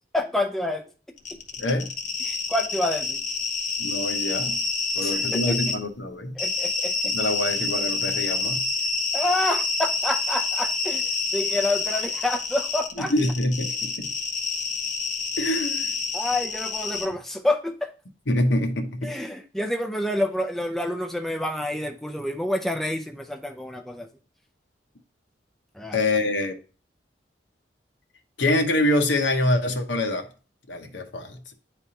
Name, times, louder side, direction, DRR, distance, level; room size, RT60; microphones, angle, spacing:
voice 1, 0.1-0.9 2.2-3.2 5.0-5.6 6.4-7.1 9.1-11.0 11.3-13.1 16.1-17.9 19.0-24.1 25.8-26.0, left 1 dB, ahead, 0.4 m, -28 dB
sound 1, 1.2-5.8 6.4-17.1, left 3 dB, 45° left, 0.9 m, -28 dB
voice 2, 1.6-1.9 3.8-4.6 5.0-6.4 7.0-8.6 13.0-14.2 15.4-16.0 16.9-17.1 18.3-19.1 25.9-26.5 28.4-30.3 30.7-31.5, left 1 dB, 90° left, 1.0 m, -25 dB
9.6 x 3.4 x 2.8 m
head